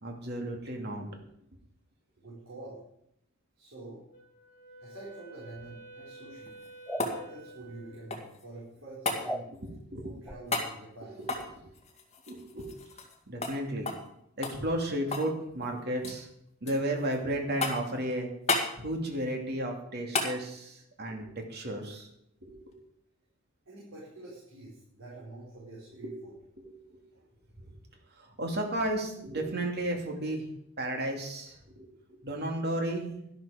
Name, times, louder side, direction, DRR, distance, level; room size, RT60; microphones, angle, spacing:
voice 1, 0.0-1.2 9.9-10.1 11.2-11.3 11.6-11.7 12.3-12.7 13.3-13.9 14.4-16.3 16.6-18.3 18.8-22.1 22.4-22.8 26.0-26.1 26.6-27.0 27.6-27.7 28.2-30.5 30.8-33.3, right 1 dB, 55° right, 2 dB, 2.5 m, -33 dB
voice 2, 2.2-2.8 3.6-4.0 4.8-6.5 7.0-9.5 10.0-11.2 23.6-26.3, right 2 dB, 75° right, -7 dB, 5.0 m, -46 dB
Wind instrument woodwind instrument, 4.1-8.2, right 2 dB, 50° left, 4.5 m, -50 dB
sound 1, 6.4-8.5 9.1-9.3 10.5-10.7 11.2-13.2 13.4-13.6 13.9-14.1 14.4-15.3 15.6-16.2 16.7-17.2 17.6-18.0 18.5-18.7 20.1-20.4 22.7-22.8, left 3 dB, 30° left, 2.0 m, -33 dB
sound 2, 6.9-7.1 9.2-9.5 10.3-10.4, right 1 dB, ahead, 0.6 m, -35 dB
12.0 x 12.0 x 5.1 m, 0.75 s
head